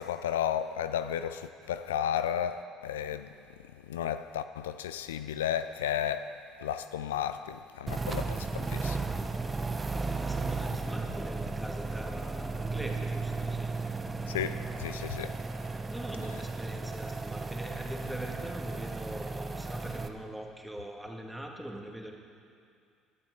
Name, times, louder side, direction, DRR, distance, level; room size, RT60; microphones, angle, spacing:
voice 1, 0.0-3.3 3.9-6.3 6.6-9.1 14.3-15.4, left 9 dB, 80° left, 0.4 m, -33 dB
sound 1, 7.9-20.1, right 3 dB, 25° right, 0.9 m, -35 dB
voice 2, 9.1-9.8 10.1-13.7 15.9-22.2, right 1 dB, 5° right, 2.1 m, -42 dB
20.5 x 12.0 x 3.9 m
hypercardioid pair, 60°, 0 cm